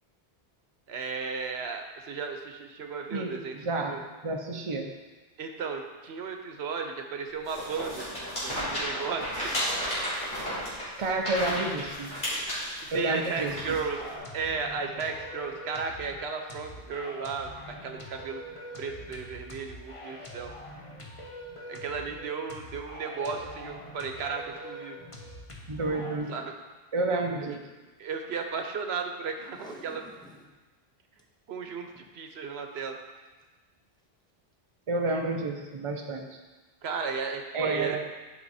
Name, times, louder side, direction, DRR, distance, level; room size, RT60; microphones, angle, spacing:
voice 1, 0.9-3.6 3.9-4.0 5.4-9.8 11.1-11.2 12.8-18.4 18.8-20.5 21.7-25.0 26.3-26.5 27.4-27.5 28.0-30.0 31.5-33.0 36.8-38.0, right 5 dB, 85° right, 4 dB, 1.0 m, -35 dB
voice 2, 3.1-4.9 11.0-12.1 12.9-13.8 25.7-26.3 26.9-27.6 34.9-36.2 37.5-38.0, right 2 dB, 35° right, 2 dB, 0.7 m, -30 dB
sound 1, 7.5-14.2, equal, 50° left, 2.7 m, -33 dB
sound 2, 13.5-26.2, equal, 35° left, 1.0 m, -44 dB
Packing tape duct tape, 29.4-30.6 30.9-31.0 31.2-31.3 31.8-32.2 33.2-33.4 34.0-34.1, equal, 5° left, 0.6 m, -49 dB
11.5 x 5.2 x 2.7 m, 1.2 s
omnidirectional pair, 1.0 m